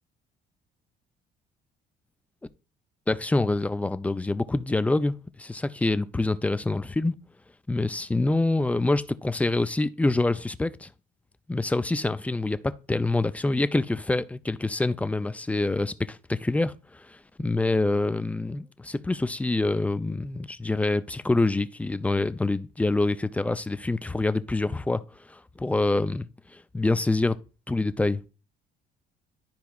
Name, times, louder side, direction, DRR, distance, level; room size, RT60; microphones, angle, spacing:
voice 1, 3.1-7.1 7.7-10.9 11.5-25.0 25.3-26.3 26.5-27.4 27.7-28.2, left 2 dB, 10° left, 0.3 m, -26 dB
12.0 x 4.7 x 2.3 m
cardioid pair, 110°, 17 cm